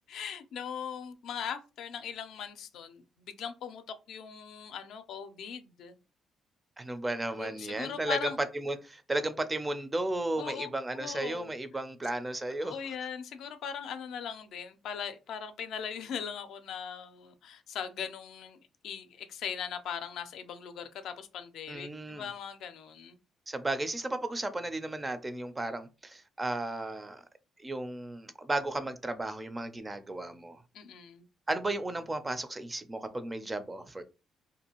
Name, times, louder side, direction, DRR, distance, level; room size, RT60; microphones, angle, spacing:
voice 1, 0.1-6.0 7.3-8.4 10.4-10.7 11.0-11.5 12.6-18.6 18.8-23.2 30.7-31.3, left 7 dB, 75° left, 0.4 m, -39 dB
voice 2, 6.8-12.8 21.7-22.2 23.5-27.2 27.6-30.6 31.5-34.0, right 2 dB, 20° right, 0.4 m, -34 dB
2.6 x 2.3 x 2.9 m
cardioid pair, 90°, 0 cm